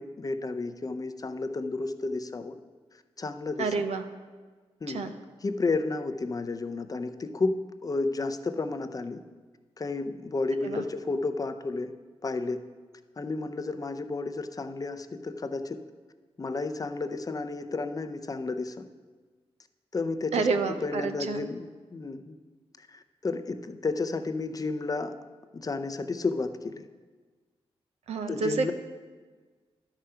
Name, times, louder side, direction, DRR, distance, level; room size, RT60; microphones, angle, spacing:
voice 1, 0.0-2.6 3.2-3.7 4.8-5.1 5.4-9.2 9.8-11.9 12.2-12.6 13.2-15.8 16.4-18.9 19.9-20.5 20.8-21.7 21.9-22.4 22.8-25.2 25.5-26.9 28.3-28.7, left 3 dB, 35° left, 9 dB, 0.5 m, -32 dB
voice 2, 3.6-4.0 4.9-5.1 10.6-10.8 20.3-21.5 28.1-28.7, right 4 dB, 90° right, 8 dB, 0.6 m, -29 dB
11.5 x 4.9 x 5.7 m, 1.4 s
cardioid pair, 75°, 11 cm